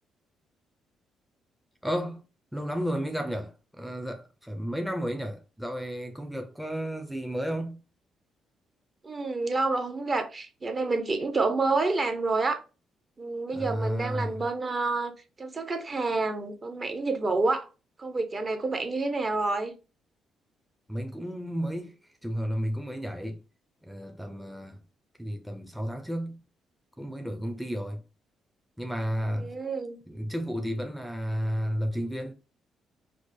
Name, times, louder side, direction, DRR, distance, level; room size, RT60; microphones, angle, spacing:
voice 1, 1.8-2.2 2.5-7.8 13.5-14.4 20.9-23.4 23.8-24.8 25.2-26.4 27.0-28.0 28.8-29.5 30.1-32.3, equal, ahead, 0.5 m, -32 dB
voice 2, 9.0-12.6 13.2-15.1 15.4-17.7 18.0-19.7 29.4-30.0, right 3 dB, 35° right, 0.7 m, -28 dB
4.7 x 2.0 x 2.6 m
cardioid pair, 90°, 0 cm